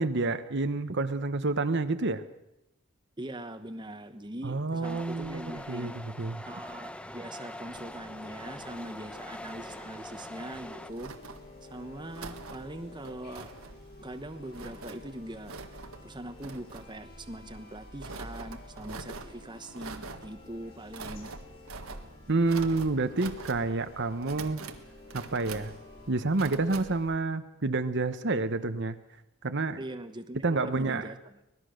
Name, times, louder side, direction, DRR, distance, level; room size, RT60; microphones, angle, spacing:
voice 1, 0.0-2.2 4.4-6.4 22.3-24.6 25.1-25.7 26.1-29.0 29.4-29.8 30.4-31.1, right 3 dB, 55° right, 9 dB, 1.0 m, -29 dB
voice 2, 3.2-5.9 6.4-11.1 11.6-13.5 14.0-15.5 16.0-21.3 29.8-31.3, right 1 dB, 20° right, 8 dB, 1.1 m, -42 dB
sound 1, 4.8-10.9, left 1 dB, 5° left, 0.8 m, -43 dB
sound 2, 7.6-26.1, left 2 dB, 45° left, 6.8 m, -51 dB
sound 3, 10.4-27.1, right 3 dB, 80° right, 1.7 m, -45 dB
25.0 x 19.0 x 6.5 m, 0.86 s
head